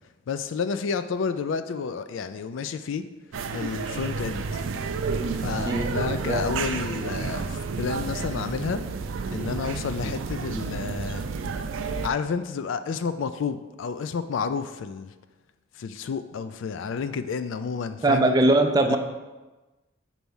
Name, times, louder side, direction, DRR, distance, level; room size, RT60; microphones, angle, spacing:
voice 1, 0.3-3.1 3.5-4.6 5.4-8.8 9.3-11.3 12.0-15.1 15.8-18.4 18.9-19.0, left 5 dB, 75° left, 11 dB, 0.4 m, -30 dB
sound 1, 3.3-12.1, right 4 dB, 85° right, 0.4 m, -30 dB
voice 2, 18.0-19.0, right 2 dB, 20° right, 5 dB, 0.4 m, -21 dB
4.6 x 4.1 x 5.4 m, 1.2 s
head